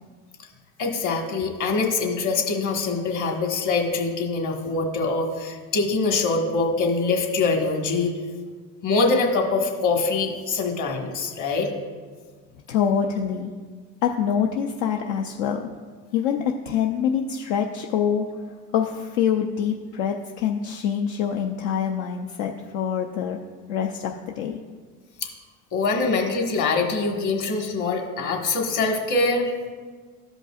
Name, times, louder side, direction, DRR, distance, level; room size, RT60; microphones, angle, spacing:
voice 1, 0.8-8.1 8.8-11.7 25.2-25.3 25.7-29.5, left 3 dB, 45° left, 2 dB, 1.6 m, -24 dB
voice 2, 12.7-13.5 14.0-15.7 16.1-18.3 18.7-23.4 23.7-24.6, left 8 dB, 70° left, 2 dB, 0.7 m, -25 dB
13.5 x 5.4 x 2.4 m, 1.5 s
supercardioid pair, 90°, 42 cm